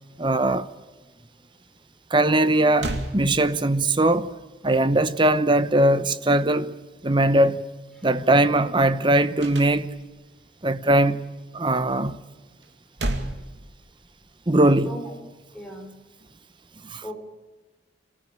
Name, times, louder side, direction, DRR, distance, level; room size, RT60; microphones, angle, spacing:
voice 1, 0.2-0.7 2.1-4.3 4.6-6.7 7.0-7.6 8.0-9.9 10.6-11.2 11.5-12.2 14.5-14.9 16.8-17.0, right 1 dB, 25° right, 0.9 m, -20 dB
sound 1, 2.8-3.9 9.4-10.3 12.6-14.2, right 1 dB, 75° right, 2.5 m, -32 dB
voice 2, 8.0-8.3 14.8-15.1 15.5-15.9 17.0-17.1, equal, 5° left, 4.6 m, -38 dB
24.5 x 15.5 x 8.9 m
head